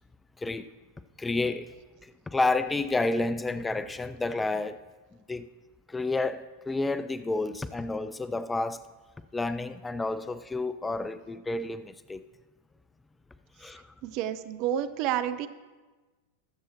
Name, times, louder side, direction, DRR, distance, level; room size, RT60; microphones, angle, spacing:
voice 1, 0.4-0.7 1.2-4.8 5.3-5.5 5.9-8.8 9.3-12.2 13.6-13.9, left 2 dB, 10° left, 14 dB, 0.3 m, -30 dB
voice 2, 14.0-15.5, right 10 dB, 45° right, 10 dB, 0.6 m, -29 dB
21.0 x 7.0 x 3.0 m, 1.3 s
figure-of-eight pair, 90°, 0 cm